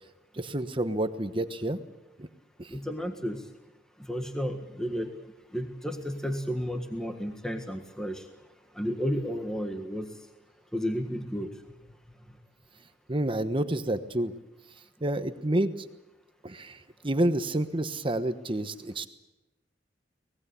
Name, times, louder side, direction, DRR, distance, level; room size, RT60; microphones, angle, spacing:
voice 1, 0.3-1.8 2.2-2.3 2.6-2.7 13.1-14.3 15.0-15.9 16.4-16.8 17.0-19.1, right 1 dB, 30° right, 9 dB, 1.2 m, -29 dB
voice 2, 2.7-3.4 4.1-5.1 5.5-8.2 8.8-10.1 10.7-11.5, equal, 5° left, 5 dB, 1.7 m, -32 dB
25.0 x 19.5 x 8.4 m, 1.0 s
head